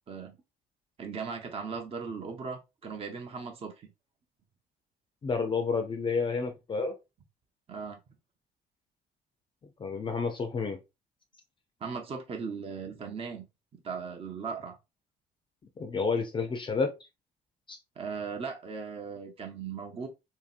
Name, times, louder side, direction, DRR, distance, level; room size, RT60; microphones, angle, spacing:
voice 1, 1.0-3.9 7.7-8.0 11.8-13.4 13.8-14.8 18.0-20.1, right 5 dB, 35° right, 0.7 m, -38 dB
voice 2, 5.2-6.9 9.8-10.8 15.8-16.9 17.7-17.8, left 4 dB, 30° left, 0.5 m, -30 dB
2.9 x 2.8 x 2.4 m
cardioid pair, 110°, 17 cm